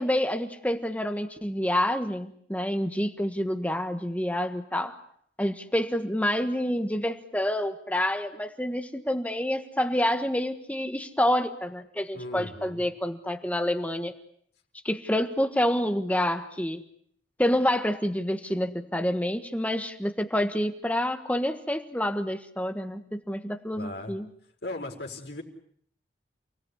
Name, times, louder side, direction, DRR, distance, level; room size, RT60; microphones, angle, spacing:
voice 1, 0.0-5.0 5.4-14.1 14.8-16.8 17.4-24.2, left 1 dB, 10° left, 7 dB, 1.4 m, -28 dB
voice 2, 12.1-12.8 23.7-24.2 24.6-25.4, left 1 dB, 60° left, 2 dB, 4.7 m, -37 dB
29.0 x 18.0 x 9.8 m, 0.65 s
head